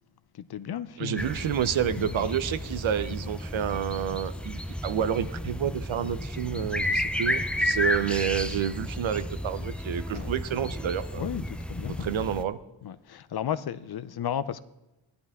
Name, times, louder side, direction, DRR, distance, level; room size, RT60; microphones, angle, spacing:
voice 1, 0.3-1.6 1.9-2.3 3.1-3.2 10.1-10.3 11.1-11.4 11.7-12.1 12.8-14.6, left 9 dB, 55° left, 0.6 m, -34 dB
voice 2, 1.0-11.3 12.0-12.6, right 9 dB, 85° right, 0.8 m, -29 dB
sound 1, 1.2-12.4, left 1 dB, 5° left, 0.3 m, -32 dB
14.5 x 11.5 x 3.6 m
wide cardioid pair, 170°, 46 cm